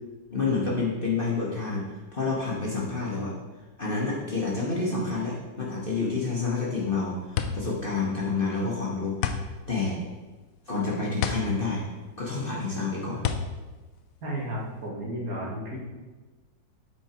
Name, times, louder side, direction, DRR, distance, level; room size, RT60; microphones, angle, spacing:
voice 1, 0.3-3.3 3.8-10.0 10.7-11.9 12.2-13.2, left 4 dB, 35° left, -5 dB, 1.3 m, -29 dB
sound 1, 6.9-14.9, left 7 dB, 70° left, 0.9 m, -32 dB
voice 2, 14.2-15.8, right 1 dB, 55° right, -4 dB, 2.1 m, -33 dB
8.7 x 5.0 x 4.4 m, 1.3 s
omnidirectional pair, 1.9 m